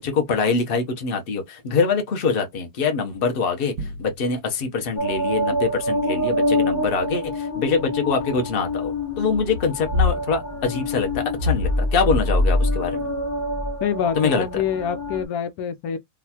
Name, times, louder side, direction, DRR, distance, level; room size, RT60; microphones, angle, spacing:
voice 1, 0.0-13.0 14.2-14.4, left 5 dB, 45° left, 0.9 m, -24 dB
sound 1, 3.8-4.7, right 2 dB, 55° right, 0.7 m, -35 dB
sound 2, 5.0-15.2, left 1 dB, 15° left, 1.0 m, -25 dB
voice 2, 13.8-16.0, left 8 dB, 80° left, 1.1 m, -26 dB
3.9 x 2.4 x 2.8 m
omnidirectional pair, 1.6 m